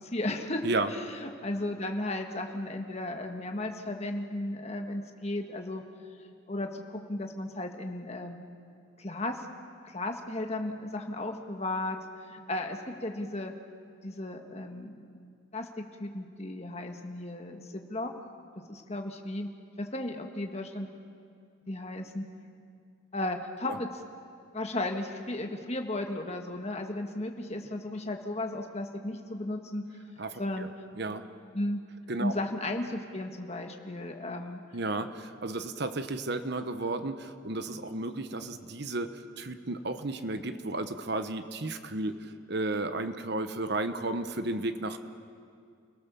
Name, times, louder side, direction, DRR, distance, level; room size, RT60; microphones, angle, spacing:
voice 1, 0.0-0.6 0.9-5.8 6.5-8.4 9.0-9.5 9.8-12.0 12.3-13.5 14.0-15.1 15.5-18.1 18.7-19.5 19.8-20.9 21.7-22.2 23.1-23.9 24.5-29.9 30.4-30.7 31.5-31.8 32.2-34.6, left 1 dB, 30° left, 4 dB, 1.6 m, -35 dB
voice 2, 30.2-30.7 31.0-31.3 32.1-32.3 34.7-45.0, right 2 dB, 55° right, 9 dB, 1.1 m, -33 dB
29.5 x 17.5 x 7.1 m, 2.3 s
head